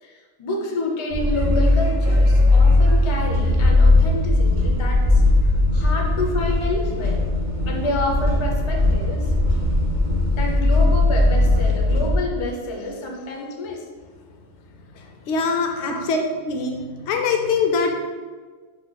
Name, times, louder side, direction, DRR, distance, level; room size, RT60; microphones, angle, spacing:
voice 1, 0.0-7.3 7.6-9.3 10.4-13.8 15.9-16.0, left 2 dB, 45° left, 0 dB, 0.4 m, -28 dB
sound 1, 1.1-12.2, left 2 dB, 75° right, 1.7 m, -18 dB
voice 2, 14.9-16.2 16.4-17.9, left 4 dB, 70° left, 3 dB, 0.9 m, -23 dB
5.4 x 2.2 x 3.9 m, 1.5 s
omnidirectional pair, 1.4 m